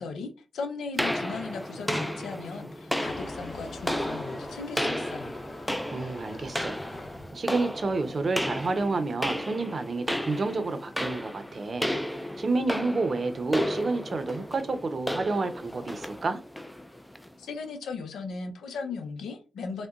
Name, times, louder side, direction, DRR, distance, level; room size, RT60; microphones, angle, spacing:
voice 1, 0.0-5.4 17.4-19.9, left 4 dB, 85° left, 0.5 m, -37 dB
sound 1, 1.0-17.3, equal, 5° left, 0.4 m, -33 dB
Motor vehicle (road) / Engine starting / Accelerating revving vroom, 3.0-8.9, left 2 dB, 50° left, 0.9 m, -45 dB
voice 2, 5.9-6.8 7.3-11.9 12.2-16.4, right 3 dB, 50° right, 0.6 m, -29 dB
3.7 x 2.1 x 2.3 m
supercardioid pair, 50°, 0 cm